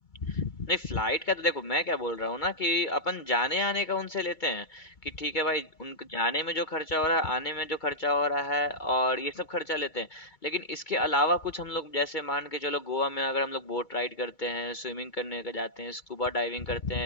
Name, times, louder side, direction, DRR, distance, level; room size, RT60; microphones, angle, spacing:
voice 1, 0.2-17.0, left 1 dB, 40° left, 0.7 m, -30 dB
omnidirectional pair, 2.2 m